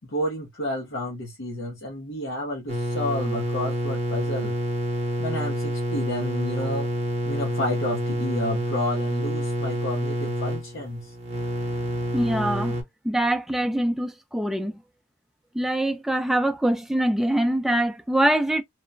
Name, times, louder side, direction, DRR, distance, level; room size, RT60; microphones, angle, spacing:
voice 1, 0.1-4.5 5.2-6.9 7.2-11.1, left 1 dB, 80° left, 0.8 m, -30 dB
sound 1, 2.7-12.8, equal, 35° right, 0.7 m, -28 dB
voice 2, 12.1-12.8 13.0-14.8 15.5-18.6, right 1 dB, ahead, 0.3 m, -24 dB
2.9 x 2.1 x 2.4 m
head